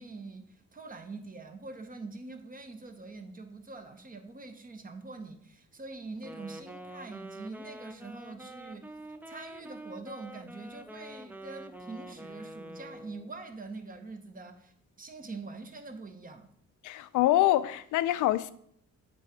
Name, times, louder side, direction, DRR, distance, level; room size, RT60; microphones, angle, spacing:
voice 1, 0.0-8.9 9.3-16.5, right 3 dB, 30° right, 0.9 m, -44 dB
Wind instrument woodwind instrument, 6.2-13.3, right 1 dB, 5° right, 0.4 m, -46 dB
voice 2, 16.8-18.5, left 15 dB, 80° left, 0.5 m, -25 dB
7.7 x 3.5 x 4.9 m
cardioid pair, 90°, 30 cm